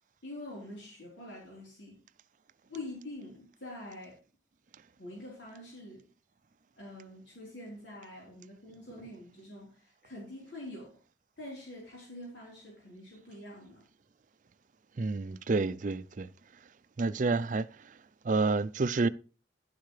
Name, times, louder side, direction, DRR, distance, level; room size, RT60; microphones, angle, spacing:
voice 1, 0.2-2.0 2.7-4.2 5.0-6.0 6.8-10.9 11.4-13.8, left 1 dB, 85° left, 3.9 m, -45 dB
voice 2, 15.0-16.3 17.0-17.7 18.3-19.1, right 3 dB, 45° right, 0.4 m, -29 dB
11.5 x 10.5 x 3.2 m
head